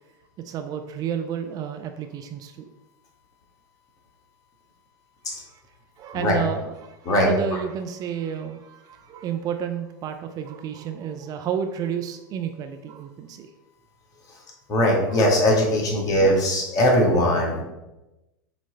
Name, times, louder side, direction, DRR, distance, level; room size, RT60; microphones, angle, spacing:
voice 1, 0.4-2.7 5.3-5.6 6.0-13.5 15.1-15.2, right 8 dB, 40° right, 7 dB, 0.5 m, -31 dB
voice 2, 14.7-17.6, left 1 dB, 35° left, -1 dB, 1.9 m, -20 dB
7.4 x 3.2 x 4.0 m, 1.0 s
hypercardioid pair, 90°, 10 cm